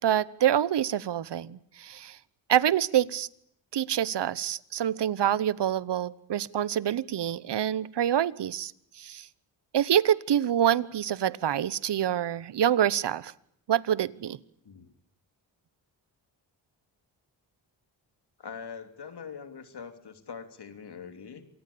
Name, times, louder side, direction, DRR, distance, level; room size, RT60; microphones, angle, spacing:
voice 1, 0.0-2.2 2.5-3.3 3.7-8.7 9.0-9.3 9.7-13.3 13.7-14.4, right 10 dB, 65° right, 19 dB, 1.0 m, -26 dB
voice 2, 18.4-21.5, left 6 dB, 60° left, 8 dB, 3.1 m, -43 dB
27.0 x 19.0 x 8.6 m, 0.70 s
cardioid pair, 75°, 45 cm